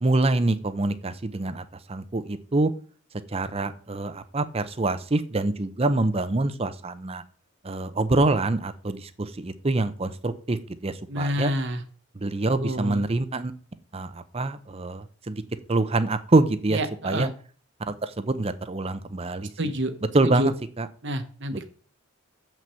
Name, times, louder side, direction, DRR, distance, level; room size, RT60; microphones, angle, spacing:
voice 1, 0.0-2.7 3.3-7.2 7.6-11.5 12.1-13.5 13.9-15.4 15.7-17.3 17.9-19.5 20.1-20.9, right 2 dB, 25° right, 12 dB, 0.6 m, -25 dB
voice 2, 11.1-11.8 12.6-13.0 16.7-17.3 19.6-19.9 20.2-20.5 21.0-21.6, equal, 50° right, 8 dB, 1.1 m, -27 dB
7.5 x 6.1 x 5.6 m, 0.43 s
head